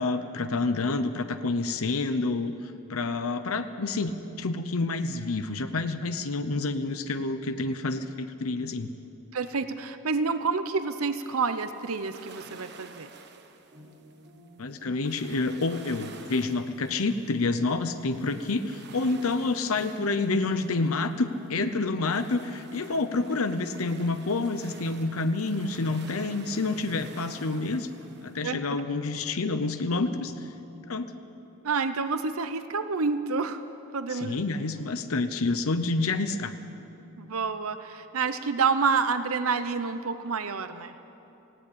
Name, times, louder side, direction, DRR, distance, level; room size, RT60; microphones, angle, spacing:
voice 1, 0.0-8.9 14.6-27.9 28.2-30.5 30.9-31.1 34.1-36.5, left 3 dB, 80° left, 9 dB, 0.8 m, -28 dB
voice 2, 9.3-13.1 28.4-28.6 31.6-33.6 33.9-34.4 37.2-40.9, right 5 dB, 85° right, 11 dB, 0.8 m, -28 dB
sound 1, 11.2-28.4, right 5 dB, 55° right, 1.2 m, -51 dB
sound 2, 13.7-31.1, left 1 dB, 30° right, 6.0 m, -51 dB
18.5 x 16.5 x 8.6 m, 2.9 s
head